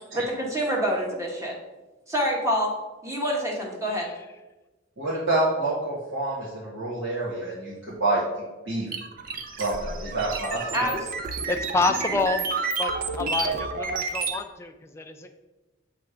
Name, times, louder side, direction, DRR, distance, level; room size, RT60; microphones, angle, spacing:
voice 1, 0.1-1.5 2.1-2.7 3.0-4.1 10.7-11.0, equal, 15° right, -1 dB, 1.0 m, -26 dB
voice 2, 5.0-8.2 8.6-8.9 9.6-10.9, right 2 dB, 80° right, -9 dB, 1.5 m, -27 dB
sound 1, 8.9-14.4, right 4 dB, 45° right, 0.5 m, -30 dB
voice 3, 11.5-12.4 12.8-15.4, left 3 dB, 15° left, 4 dB, 0.3 m, -28 dB
7.0 x 3.2 x 4.9 m, 1.1 s
head